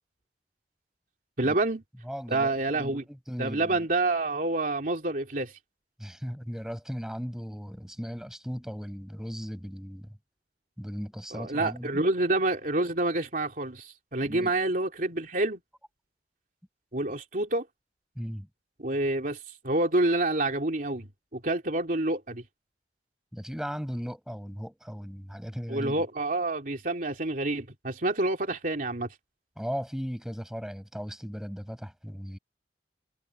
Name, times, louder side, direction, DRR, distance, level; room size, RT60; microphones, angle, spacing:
voice 1, 1.4-1.8 2.3-3.0 3.4-5.6 11.3-15.6 16.9-17.7 18.8-22.4 25.7-29.1, right 2 dB, 50° right, 3.2 m, -28 dB
voice 2, 2.0-3.8 6.0-10.1 10.8-12.0 14.3-14.5 18.2-18.5 23.3-26.0 29.6-32.4, equal, 5° right, 6.3 m, -37 dB
head